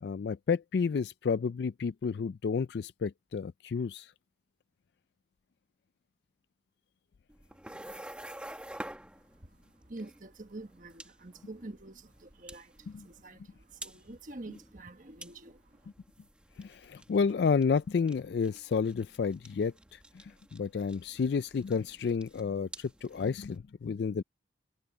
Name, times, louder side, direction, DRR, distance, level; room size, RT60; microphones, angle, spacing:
voice 1, 0.0-4.1 12.9-13.0 16.6-24.2, left 5 dB, 65° left, 0.3 m, -31 dB
sound 1, 7.3-23.6, right 1 dB, 5° right, 1.5 m, -50 dB
voice 2, 9.1-15.9, right 2 dB, 45° right, 1.3 m, -47 dB
head